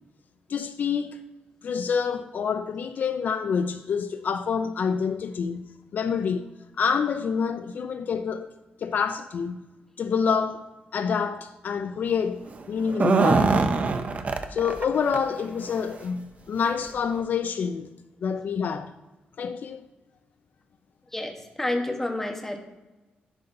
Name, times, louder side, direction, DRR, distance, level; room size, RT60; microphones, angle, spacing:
voice 1, 0.5-1.2 1.6-5.6 5.9-6.5 6.8-8.5 8.8-9.6 10.0-13.6 14.5-17.9 18.2-18.9 19.4-19.9, left 6 dB, 65° left, 0.4 m, -27 dB
sound 1, 12.8-14.9 15.1-15.2 15.7-15.8 16.7-16.8 17.2-17.3, right 4 dB, 45° right, 0.6 m, -23 dB
voice 2, 21.1-22.6, left 1 dB, 10° left, 1.1 m, -29 dB
11.0 x 5.2 x 2.6 m
cardioid pair, 100°, 3 cm